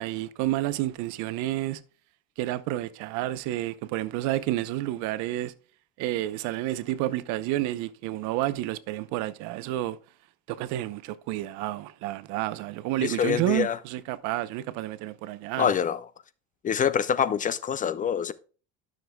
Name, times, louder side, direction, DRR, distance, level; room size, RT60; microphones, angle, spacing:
voice 1, 0.0-1.8 2.4-5.5 6.0-10.0 10.5-15.7, right 15 dB, 70° right, 0.8 m, -30 dB
voice 2, 13.0-13.8 15.6-16.0 16.6-18.3, left 8 dB, 25° left, 0.4 m, -25 dB
12.5 x 6.6 x 2.2 m
supercardioid pair, 120°, 31 cm